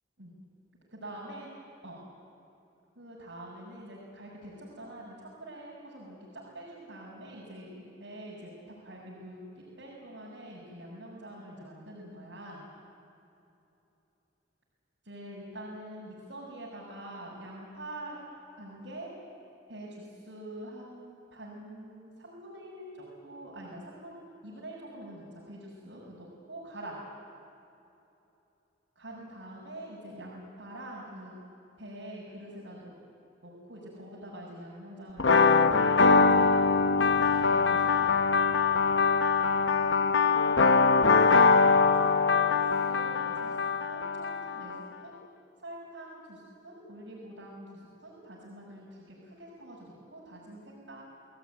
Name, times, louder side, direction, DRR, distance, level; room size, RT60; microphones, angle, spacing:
voice 1, 0.9-1.5 1.8-2.0 2.9-12.6 15.0-18.2 18.6-19.1 19.7-27.0 28.9-31.3 31.8-32.9 33.4-36.6 36.9-38.1 39.7-39.9 40.3-43.6 43.9-44.8 45.0-45.1 45.6-51.0, right 1 dB, 80° right, -5 dB, 6.4 m, -45 dB
sound 1, 35.2-44.8, left 4 dB, 90° left, 1.0 m, -23 dB
29.0 x 18.5 x 9.4 m, 2.9 s
head